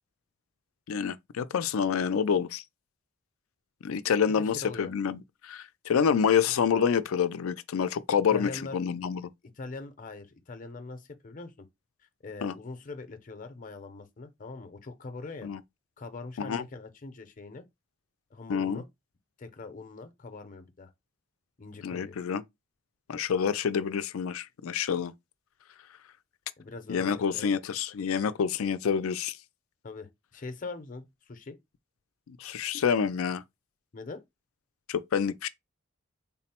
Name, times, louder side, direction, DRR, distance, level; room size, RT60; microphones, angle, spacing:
voice 1, 0.9-2.6 3.8-9.3 12.4-12.5 15.4-15.6 16.4-16.6 18.5-18.8 21.8-22.4 23.1-25.1 26.9-29.4 32.3-33.4 34.9-35.5, left 7 dB, 85° left, 0.4 m, -27 dB
voice 2, 4.3-4.9 8.3-8.8 9.6-11.7 12.0-15.5 16.0-17.6 18.3-18.9 19.4-20.9 21.6-22.2 26.6-27.5 29.8-31.6 33.9-34.2, left 3 dB, 40° left, 0.6 m, -42 dB
3.7 x 2.0 x 4.2 m
head